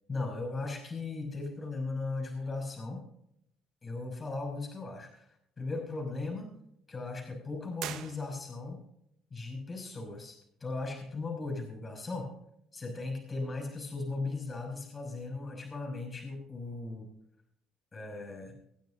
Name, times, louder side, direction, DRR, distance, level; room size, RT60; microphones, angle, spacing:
voice 1, 0.1-3.0 3.8-5.3 5.6-6.5 6.9-8.8 9.3-12.3 12.7-17.1 17.9-18.5, left 3 dB, 30° left, 1 dB, 6.0 m, -37 dB
sound 1, 7.7-8.8, right 11 dB, 70° right, 1.1 m, -42 dB
26.5 x 9.2 x 2.6 m, 0.74 s
supercardioid pair, 90°, 0 cm